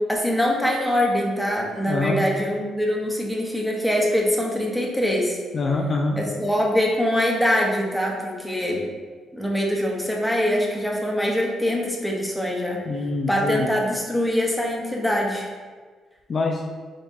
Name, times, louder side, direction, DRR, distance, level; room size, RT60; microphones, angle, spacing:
voice 1, 0.0-5.4 6.2-8.9 9.3-12.8 13.3-15.5, equal, ahead, -2 dB, 0.8 m, -23 dB
voice 2, 1.9-2.2 5.5-6.2 12.9-13.7 16.3-16.6, left 3 dB, 40° left, 1 dB, 0.3 m, -24 dB
5.1 x 3.0 x 2.6 m, 1.5 s
cardioid pair, 90°, 0 cm